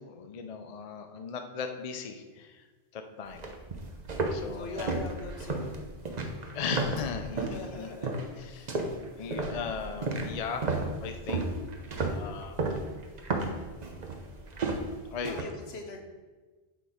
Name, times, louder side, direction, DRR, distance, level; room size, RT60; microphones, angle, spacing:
voice 1, 0.0-2.7 2.9-3.5 4.3-4.9 6.5-7.9 8.4-8.7 9.2-11.4 11.9-12.8 15.1-15.4, left 6 dB, 45° left, 6 dB, 0.6 m, -38 dB
Walking On A Wooden Floor, 3.3-7.6 8.0-8.4 8.7-15.4, right 2 dB, 45° right, 0.8 m, -33 dB
sound 1, 3.8-4.2 4.6-5.7 6.7-7.7, right 1 dB, 70° right, 1.4 m, -51 dB
voice 2, 4.5-5.9 7.2-8.1 8.4-8.8 9.2-9.3 15.3-16.0, left 3 dB, 75° left, 3 dB, 1.2 m, -42 dB
7.6 x 4.4 x 5.0 m, 1.3 s
omnidirectional pair, 1.1 m